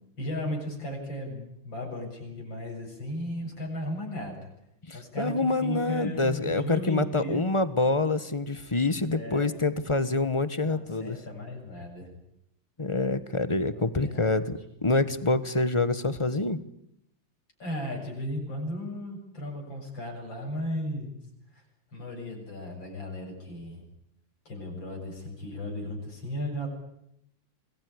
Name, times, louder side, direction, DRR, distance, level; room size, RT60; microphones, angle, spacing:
voice 1, 0.2-4.4 4.9-7.5 9.1-9.5 10.6-12.1 13.7-14.5 17.6-21.1 21.5-21.6 21.9-23.8 24.4-26.7, equal, 75° left, 0 dB, 8.2 m, -36 dB
voice 2, 4.9-11.2 12.8-16.6, left 2 dB, 20° left, 13 dB, 1.2 m, -26 dB
27.0 x 20.5 x 9.8 m, 0.77 s
omnidirectional pair, 2.1 m